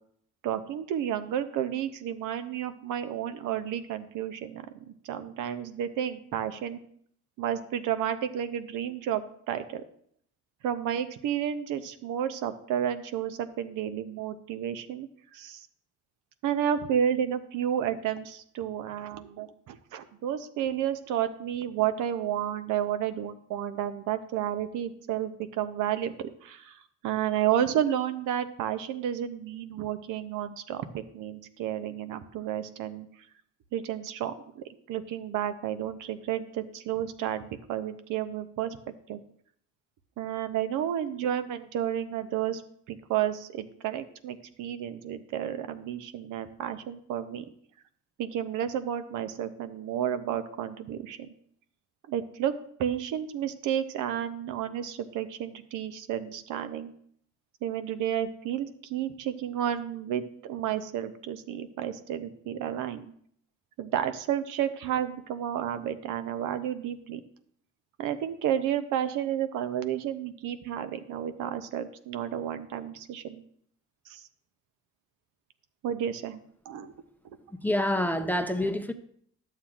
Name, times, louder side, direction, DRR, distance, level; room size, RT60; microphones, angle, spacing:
voice 1, 0.4-6.8 7.4-9.8 10.6-15.7 16.4-33.1 33.7-38.8 39.1-39.2 40.2-42.6 42.9-47.4 48.2-51.3 52.1-56.9 57.6-63.1 63.8-67.2 68.0-73.4 74.1-74.2 75.8-76.4 76.7-76.9, right 10 dB, 85° right, 0.6 m, -31 dB
voice 2, 77.6-78.9, left 1 dB, 5° left, 0.5 m, -27 dB
11.5 x 7.4 x 2.4 m
cardioid pair, 90°, 30 cm